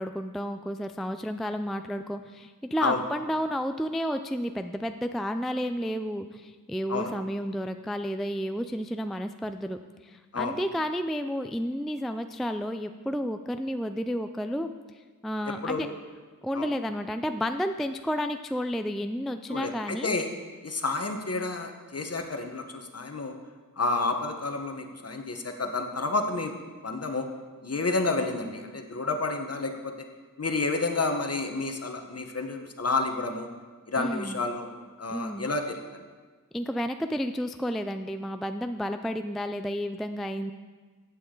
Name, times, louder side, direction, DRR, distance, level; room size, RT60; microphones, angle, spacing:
voice 1, 0.0-15.9 16.4-20.1 33.9-34.4 35.1-35.5 36.5-40.5, equal, ahead, 8 dB, 0.3 m, -31 dB
voice 2, 15.6-15.9 16.5-16.7 19.5-20.3 20.6-23.3 23.8-26.5 26.8-27.3 27.6-29.9 30.4-33.5 33.9-34.7 35.0-35.8, left 3 dB, 45° left, 5 dB, 1.2 m, -30 dB
15.5 x 8.6 x 3.8 m, 1.4 s
wide cardioid pair, 100°, 35 cm